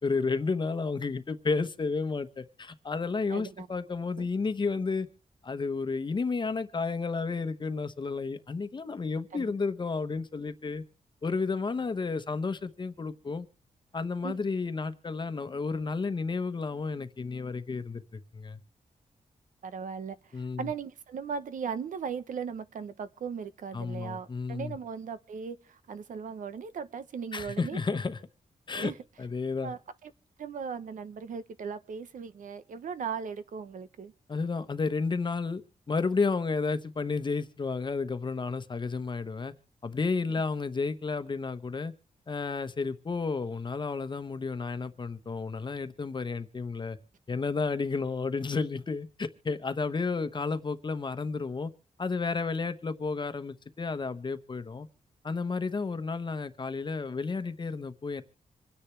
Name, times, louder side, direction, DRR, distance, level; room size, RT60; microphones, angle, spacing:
voice 1, 0.0-5.1 5.4-10.8 11.2-13.5 13.9-18.6 20.3-20.7 23.7-24.8 27.3-28.2 28.7-28.9 29.2-29.7 34.3-35.6 35.9-39.5 39.8-41.9 42.3-47.0 47.3-51.7 52.0-54.9 55.2-58.2, left 4 dB, 35° left, 1.0 m, -32 dB
voice 2, 3.3-3.7 9.3-9.5 14.2-14.4 19.6-28.0 28.7-28.9 29.6-30.1 30.4-34.1, right 6 dB, 80° right, 0.9 m, -38 dB
26.0 x 10.0 x 3.3 m
wide cardioid pair, 120°, 13 cm